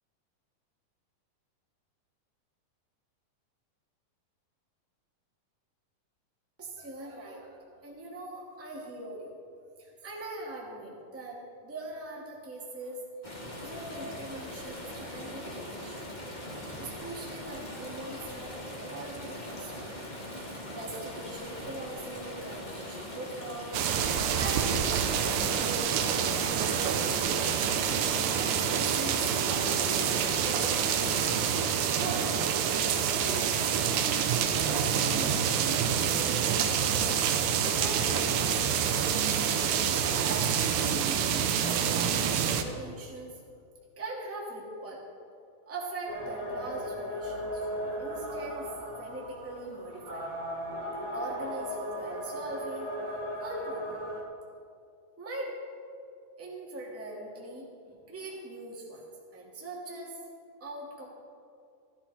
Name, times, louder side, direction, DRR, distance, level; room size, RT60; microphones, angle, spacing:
voice 1, 6.6-9.3 9.8-13.0 13.6-16.2 16.8-23.7 24.4-26.0 26.4-27.5 28.3-31.3 32.0-32.4 32.8-34.0 34.5-37.2 37.6-39.2 39.6-41.5 41.8-43.4 43.9-45.0 45.6-48.7 49.0-50.3 50.8-52.9 53.4-54.0 55.2-55.5 56.4-59.0 59.3-60.2 60.6-61.0, right 2 dB, 5° right, -3 dB, 1.4 m, -41 dB
sound 1, 13.2-32.4, left 1 dB, 30° left, 0.8 m, -41 dB
sound 2, 23.7-42.6, right 8 dB, 80° right, 2.4 m, -27 dB
sound 3, 46.1-54.2, equal, 30° right, 1.7 m, -37 dB
15.0 x 12.0 x 4.2 m, 2.3 s
omnidirectional pair, 4.0 m